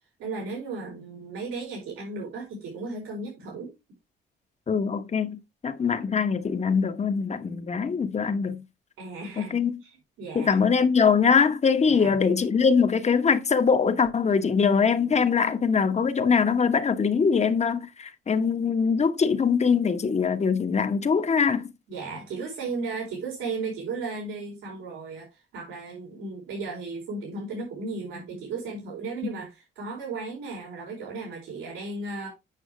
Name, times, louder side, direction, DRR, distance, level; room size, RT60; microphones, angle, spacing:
voice 1, 0.2-3.7 9.0-9.5 10.2-10.6 11.9-12.1 21.9-32.3, right 3 dB, 90° right, 4.4 m, -35 dB
voice 2, 4.7-8.6 9.4-9.7 10.3-21.7, left 6 dB, 35° left, 1.1 m, -23 dB
8.5 x 6.0 x 3.2 m
cardioid pair, 90°, 20 cm